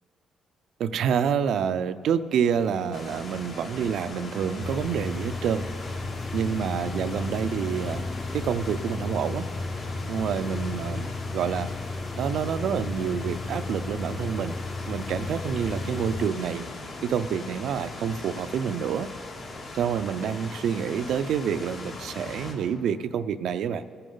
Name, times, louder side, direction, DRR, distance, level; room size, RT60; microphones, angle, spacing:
voice 1, 0.8-5.7 6.3-8.0 8.3-9.5 10.1-11.7 12.2-14.6 14.9-16.7 17.0-19.1 19.7-23.8, right 7 dB, 75° right, 12 dB, 0.5 m, -28 dB
sound 1, 2.5-5.2 6.3-9.1, left 3 dB, 50° left, 1.0 m, -46 dB
sound 2, 2.9-22.5, left 2 dB, 65° left, 2.5 m, -40 dB
sound 3, 4.6-16.3, left 3 dB, 25° left, 0.8 m, -34 dB
21.0 x 10.0 x 3.9 m, 2.2 s
cardioid pair, 90°, 0 cm